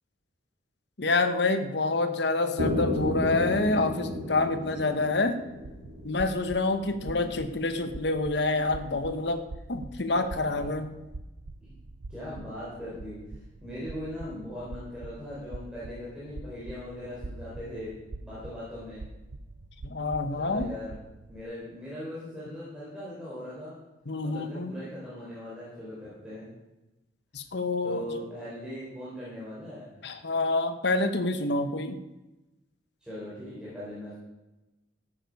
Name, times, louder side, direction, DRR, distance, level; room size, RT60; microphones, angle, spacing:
voice 1, 1.0-5.4 6.0-9.4 9.7-10.9 19.8-20.7 24.1-24.7 27.3-28.0 30.0-32.0, left 3 dB, 60° left, 8 dB, 1.0 m, -27 dB
sound 1, 2.6-6.5, left 1 dB, 70° right, 3.0 m, -32 dB
sound 2, 5.5-21.4, right 2 dB, 85° right, 0.7 m, -44 dB
voice 2, 6.7-7.3 10.2-10.8 11.7-11.8 12.1-13.2 13.6-19.0 20.4-20.9 21.3-23.7 24.2-26.5 27.8-30.0 33.0-34.1, left 1 dB, 5° right, -10 dB, 4.1 m, -40 dB
14.5 x 8.9 x 5.3 m, 1.0 s
head